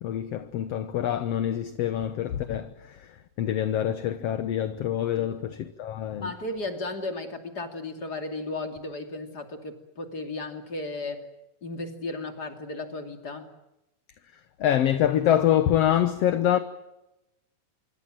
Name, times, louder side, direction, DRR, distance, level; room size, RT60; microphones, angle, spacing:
voice 1, 0.0-6.3 14.6-16.6, left 11 dB, 60° left, 1.9 m, -25 dB
voice 2, 6.2-11.3 11.6-13.5, left 2 dB, 35° left, 3.1 m, -35 dB
26.5 x 24.0 x 7.6 m
omnidirectional pair, 3.5 m